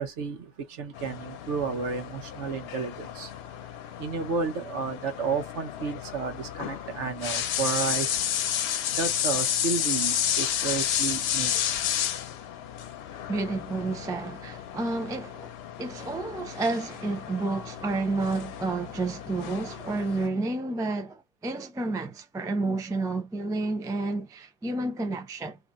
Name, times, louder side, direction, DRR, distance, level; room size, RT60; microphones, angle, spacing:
voice 1, 0.0-3.3 4.0-8.2 8.9-11.6, right 5 dB, 70° right, 1.2 m, -32 dB
sound 1, 0.9-20.3, left 10 dB, 65° left, 0.7 m, -32 dB
voice 2, 13.3-15.5 15.8-25.6, right 3 dB, 5° right, 0.3 m, -30 dB
2.8 x 2.6 x 3.6 m
omnidirectional pair, 1.3 m